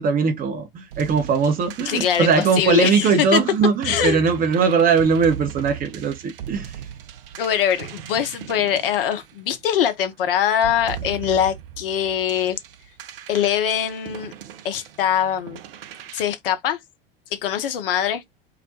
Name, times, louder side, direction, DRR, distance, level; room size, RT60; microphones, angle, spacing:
voice 1, 0.0-6.7, right 5 dB, 30° right, 0.6 m, -20 dB
sound 1, 0.9-9.9 10.5-16.2, right 10 dB, 65° right, 0.5 m, -38 dB
voice 2, 1.9-3.4 3.8-4.2 7.4-12.6 13.3-14.3 14.6-15.6 16.1-16.8 17.3-18.2, left 9 dB, 65° left, 0.6 m, -22 dB
2.3 x 2.1 x 2.7 m
figure-of-eight pair, 75°, 30 cm